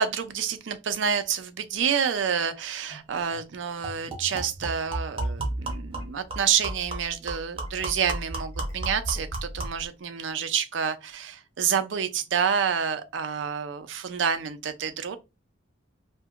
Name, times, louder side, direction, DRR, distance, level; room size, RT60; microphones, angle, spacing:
voice 1, 0.0-15.2, right 7 dB, 65° right, 0.4 m, -28 dB
sound 1, 2.9-3.0 3.3-3.4 3.8-9.9, right 2 dB, 30° right, 0.8 m, -33 dB
2.8 x 2.5 x 2.4 m
head